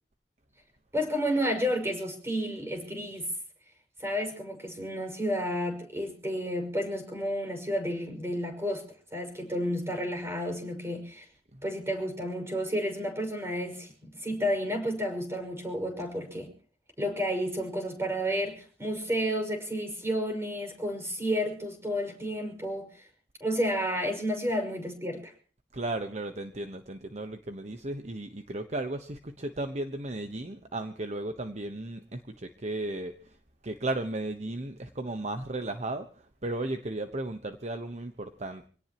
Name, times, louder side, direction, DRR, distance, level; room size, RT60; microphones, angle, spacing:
voice 1, 0.9-3.3 4.0-8.8 9.1-11.2 11.6-16.5 17.0-23.0 23.4-25.3, equal, 15° right, 5 dB, 5.8 m, -31 dB
voice 2, 25.7-33.1 33.6-38.7, right 2 dB, 40° right, 7 dB, 1.1 m, -35 dB
27.0 x 18.0 x 3.0 m, 0.40 s
head